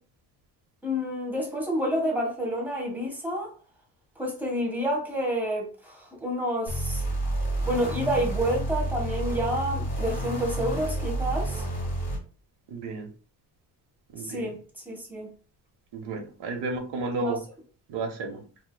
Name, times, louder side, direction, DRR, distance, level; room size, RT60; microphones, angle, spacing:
voice 1, 0.8-3.5 4.2-7.0 7.6-11.6 14.2-14.6 14.8-15.3 17.2-17.4, equal, 5° right, 1.4 m, -29 dB
sound 1, 6.7-12.2, right 1 dB, 20° left, 1.4 m, -30 dB
voice 2, 12.7-13.1 14.1-14.5 15.9-17.4 17.9-18.4, right 3 dB, 90° right, 1.0 m, -32 dB
4.6 x 2.8 x 2.2 m
cardioid pair, 140°, 40 cm